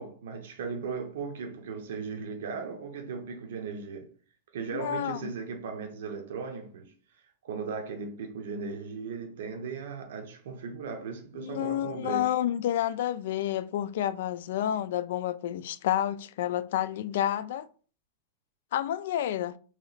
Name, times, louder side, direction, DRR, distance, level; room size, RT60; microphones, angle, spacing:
voice 1, 0.0-4.1 4.5-12.3, right 5 dB, 70° right, 0.7 m, -37 dB
voice 2, 4.7-5.2 11.4-17.7 18.7-19.6, left 11 dB, 60° left, 0.3 m, -29 dB
3.0 x 3.0 x 4.0 m
supercardioid pair, 170°, 0 cm